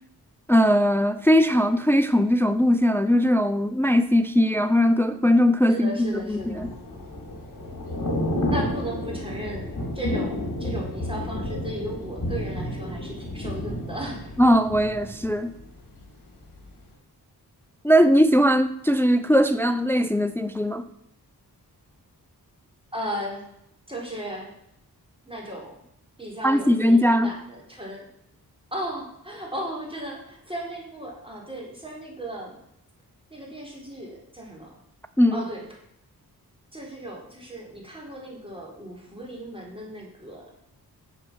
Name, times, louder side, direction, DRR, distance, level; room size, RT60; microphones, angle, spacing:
voice 1, 0.5-6.7 14.4-15.5 17.8-20.8 26.4-27.3 35.2-35.4, equal, 5° left, 0.5 m, -20 dB
voice 2, 5.7-6.7 8.5-14.4 22.9-23.5 23.9-24.5 25.2-25.8 26.2-28.1 28.7-32.5 33.3-34.7 35.3-35.6 36.7-40.5, equal, 15° right, 4.0 m, -36 dB
Thunder / Rain, 6.1-16.1 16.4-16.7, left 1 dB, 55° left, 3.6 m, -31 dB
11.0 x 7.8 x 6.2 m
wide cardioid pair, 95°, 38 cm